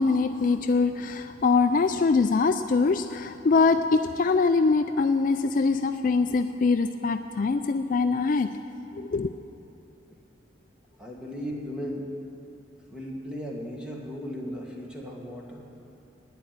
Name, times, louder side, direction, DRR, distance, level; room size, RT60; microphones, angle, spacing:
voice 1, 0.0-8.5 9.0-9.3, left 4 dB, 45° left, 8 dB, 0.4 m, -23 dB
voice 2, 11.0-12.1 12.9-15.7, equal, 5° right, -2 dB, 1.9 m, -36 dB
11.5 x 9.6 x 9.2 m, 2.8 s
head